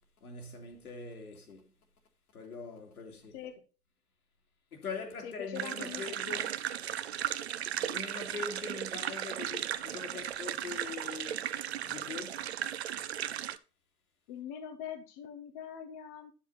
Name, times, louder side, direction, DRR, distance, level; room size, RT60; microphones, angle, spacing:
voice 1, 0.2-1.7 2.3-3.4 4.7-6.5 7.8-11.5 11.8-12.5, left 4 dB, 65° left, 2.7 m, -43 dB
voice 2, 5.2-6.5 14.3-16.3, left 8 dB, 15° left, 0.6 m, -43 dB
sound 1, 5.5-13.6, right 10 dB, 45° right, 0.6 m, -36 dB
9.0 x 7.3 x 4.0 m
figure-of-eight pair, 125°, 47 cm